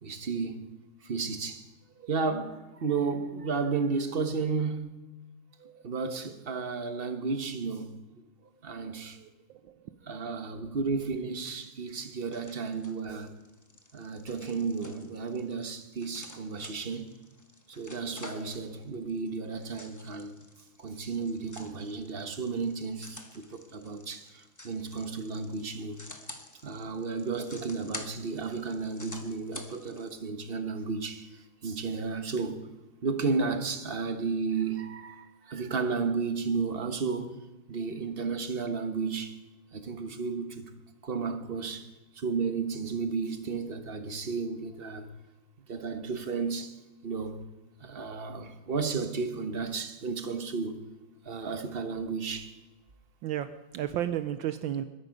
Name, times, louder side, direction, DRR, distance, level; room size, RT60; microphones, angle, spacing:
voice 1, 0.0-0.7 1.0-1.7 2.0-5.0 5.6-8.0 8.6-9.3 10.1-13.4 13.9-17.1 17.7-20.3 20.8-26.0 26.6-32.7 33.0-37.4 37.7-39.4 39.7-40.7 41.0-41.9 42.1-45.1 45.7-46.7 47.0-47.4 47.8-50.8 51.2-52.5, right 4 dB, 35° right, 1.1 m, -33 dB
voice 2, 9.5-9.9 53.2-54.8, right 11 dB, 75° right, 1.4 m, -33 dB
sound 1, 11.8-30.1, left 1 dB, 15° left, 0.8 m, -49 dB
21.5 x 11.0 x 5.3 m
omnidirectional pair, 2.3 m